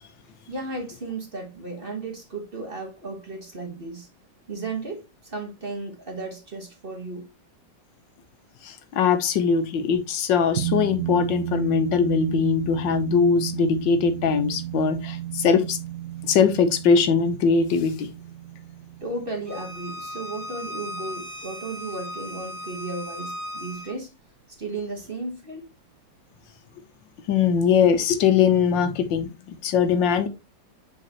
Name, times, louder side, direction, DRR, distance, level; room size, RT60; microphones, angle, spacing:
voice 1, 0.5-4.1 4.5-7.3 19.0-24.1 24.6-25.6, right 3 dB, 35° right, 1.4 m, -34 dB
voice 2, 8.6-15.8 16.2-18.1 27.3-30.3, left 6 dB, 80° left, 1.6 m, -21 dB
sound 1, 10.6-21.3, right 13 dB, 60° right, 0.9 m, -33 dB
Bowed string instrument, 19.5-23.9, left 1 dB, 40° left, 2.7 m, -37 dB
7.5 x 4.3 x 2.9 m
omnidirectional pair, 2.0 m